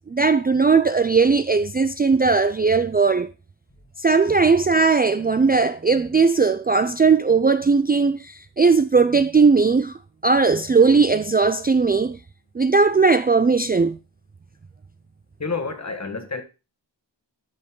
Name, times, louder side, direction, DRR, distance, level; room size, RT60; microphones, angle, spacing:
voice 1, 0.1-3.3 4.0-8.2 8.6-9.9 10.2-12.2 12.6-14.0, right 4 dB, 20° right, 0.4 m, -18 dB
voice 2, 15.4-16.4, left 4 dB, 35° left, 1.6 m, -29 dB
13.0 x 5.2 x 3.8 m
wide cardioid pair, 80°, 44 cm